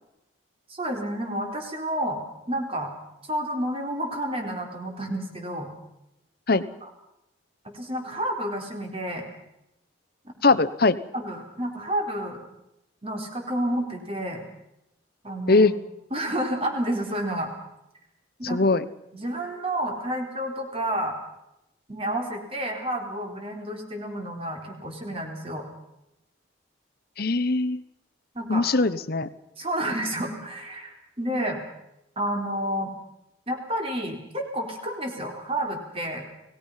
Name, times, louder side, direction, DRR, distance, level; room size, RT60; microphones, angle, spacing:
voice 1, 0.7-2.2 2.5-2.9 3.3-5.7 6.5-6.6 7.6-9.3 10.5-10.6 11.1-12.4 13.0-14.4 15.2-15.7 16.1-17.5 18.4-18.6 19.1-21.2 21.9-25.7 28.3-28.6 29.6-31.6 32.2-32.9 33.5-36.3, right 1 dB, 30° right, 2 dB, 4.1 m, -30 dB
voice 2, 10.4-11.0 15.5-15.7 18.5-18.8 27.2-27.8 28.5-29.3, left 3 dB, 50° left, 15 dB, 1.0 m, -21 dB
29.0 x 18.5 x 5.7 m, 0.86 s
head